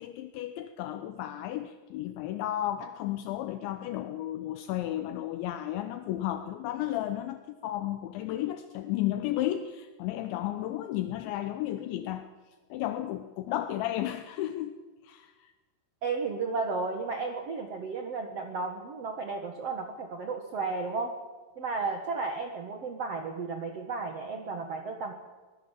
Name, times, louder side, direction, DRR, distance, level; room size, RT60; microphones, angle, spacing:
voice 1, 0.0-12.3 12.7-14.7 15.0-15.5, left 13 dB, 80° left, 9 dB, 3.1 m, -33 dB
voice 2, 16.0-21.1 21.6-25.1, right 4 dB, 80° right, 4 dB, 1.4 m, -33 dB
24.0 x 19.5 x 7.4 m, 1.3 s
omnidirectional pair, 5.5 m